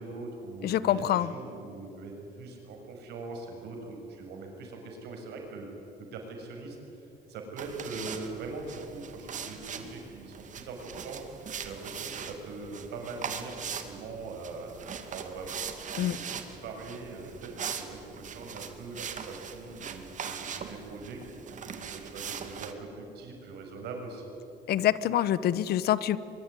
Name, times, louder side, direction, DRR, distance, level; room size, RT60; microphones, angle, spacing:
voice 1, 0.0-5.7 6.0-15.5 15.8-21.3 21.6-24.3, right 3 dB, 80° right, 2 dB, 6.5 m, -42 dB
voice 2, 0.6-1.3 15.9-16.2 24.7-26.2, left 12 dB, 70° left, 17 dB, 1.0 m, -26 dB
sound 1, 7.6-22.7, right 7 dB, 50° right, 2.4 m, -41 dB
23.0 x 23.0 x 9.8 m, 2.8 s
cardioid pair, 110°, 17 cm